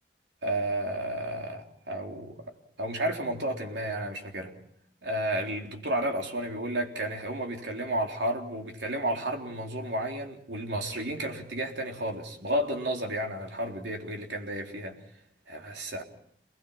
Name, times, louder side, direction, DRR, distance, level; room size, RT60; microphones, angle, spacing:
voice 1, 0.4-2.4 2.8-4.5 5.0-15.0 15.5-16.0, right 1 dB, 85° right, 2 dB, 3.8 m, -32 dB
28.5 x 20.5 x 5.9 m, 0.66 s
head